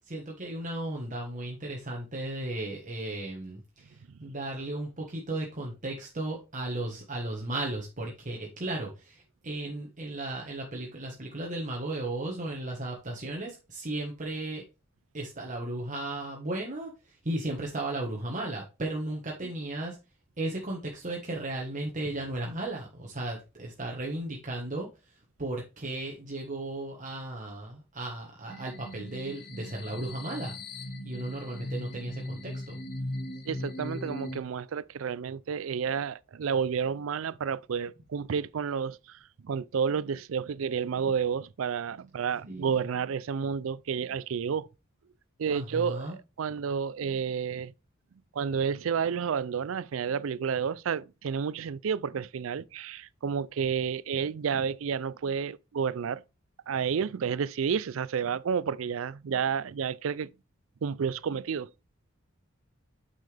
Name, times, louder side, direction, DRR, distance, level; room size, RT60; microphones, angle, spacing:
voice 1, 0.1-14.6 15.1-20.0 20.4-24.9 25.4-30.5 31.0-32.8 42.5-42.8 45.5-46.1, right 1 dB, 40° right, 1.4 m, -35 dB
sound 1, 28.5-34.4, left 1 dB, 50° left, 1.2 m, -38 dB
voice 2, 33.5-44.7 45.4-47.7 48.3-56.2 56.7-60.3 60.8-61.7, right 6 dB, 70° right, 0.4 m, -31 dB
9.1 x 5.6 x 3.4 m
head